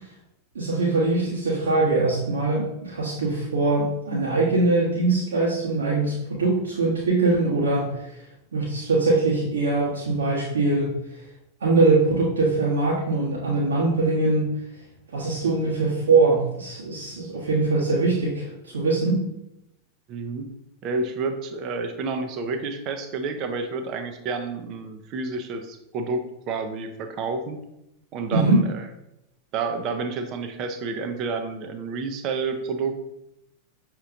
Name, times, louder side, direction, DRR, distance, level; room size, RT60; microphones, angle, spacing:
voice 1, 0.5-8.2 8.5-10.9 11.6-14.5 15.1-19.2 28.3-28.6, right 3 dB, 65° right, -7 dB, 1.2 m, -22 dB
voice 2, 20.1-20.5 20.8-27.6 28.1-28.9 29.5-33.1, right 4 dB, 40° right, 7 dB, 0.6 m, -30 dB
6.5 x 2.9 x 2.5 m, 0.85 s
figure-of-eight pair, 90°, 0 cm